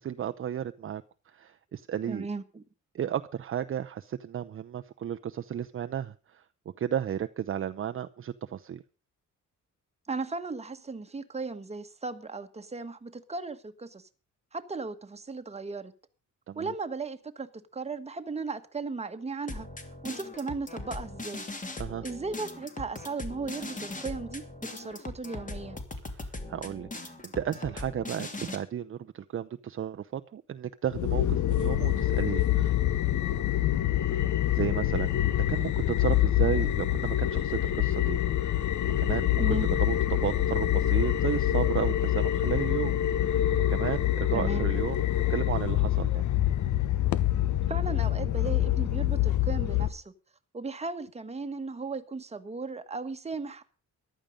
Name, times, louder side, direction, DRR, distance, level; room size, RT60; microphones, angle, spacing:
voice 1, 0.0-2.3 2.9-6.4 6.8-8.8 16.5-16.7 21.8-22.0 26.1-32.7 34.1-34.3 34.5-35.1 35.5-38.6 39.0-42.9 43.2-43.4 43.7-45.0 45.3-46.2, right 9 dB, 40° right, 0.7 m, -33 dB
voice 2, 2.1-2.6 10.1-14.1 14.5-15.9 16.5-19.7 20.0-21.5 22.0-24.4 24.7-25.8 39.4-39.7 44.3-44.7 47.7-50.1 50.5-53.6, right 3 dB, 20° right, 1.4 m, -36 dB
sound 1, 19.5-28.6, left 2 dB, 25° left, 2.7 m, -40 dB
sound 2, 30.9-49.9, left 12 dB, 65° left, 1.0 m, -26 dB
14.5 x 11.5 x 5.2 m
cardioid pair, 125°, 31 cm